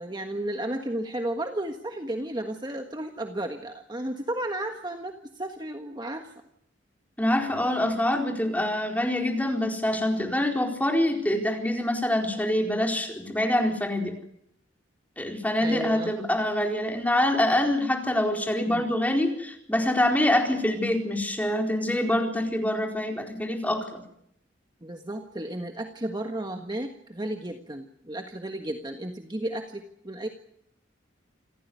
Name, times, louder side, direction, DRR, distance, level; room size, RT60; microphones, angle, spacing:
voice 1, 0.0-6.3 15.6-16.1 18.7-18.9 24.8-30.3, right 1 dB, 20° right, 4 dB, 1.5 m, -33 dB
voice 2, 7.2-14.1 15.2-24.0, left 1 dB, 10° left, 2 dB, 4.3 m, -25 dB
27.5 x 14.5 x 9.6 m, 0.76 s
head